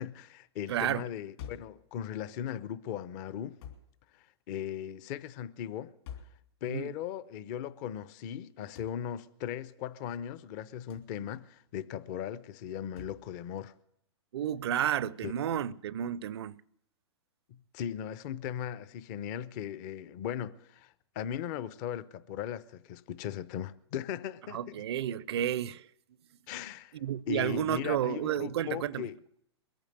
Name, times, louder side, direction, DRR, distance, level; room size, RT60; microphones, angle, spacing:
voice 1, 0.0-3.6 4.1-5.9 6.6-13.7 15.2-15.3 17.5-24.8 26.5-27.0 27.3-29.2, left 9 dB, 40° left, 0.7 m, -38 dB
voice 2, 0.7-1.0 6.7-6.9 14.3-16.6 24.5-25.9 26.9-29.1, right 10 dB, 65° right, 0.5 m, -31 dB
sound 1, 1.4-1.8 3.6-3.9 6.1-6.4 8.8-9.0 10.9-11.1 13.0-13.2, left 8 dB, 60° left, 3.3 m, -46 dB
22.0 x 8.9 x 6.6 m
hypercardioid pair, 120°, 15 cm